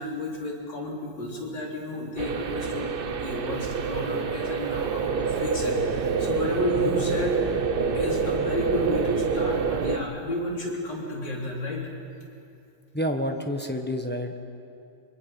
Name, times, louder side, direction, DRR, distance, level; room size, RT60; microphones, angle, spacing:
voice 1, 0.0-7.5 7.9-11.9, left 1 dB, 65° left, -3 dB, 4.1 m, -31 dB
sound 1, 2.2-10.0, right 5 dB, 65° right, 0.5 m, -27 dB
voice 2, 12.9-14.4, equal, 5° left, 3 dB, 0.9 m, -29 dB
24.0 x 23.5 x 5.7 m, 2.6 s
omnidirectional pair, 2.1 m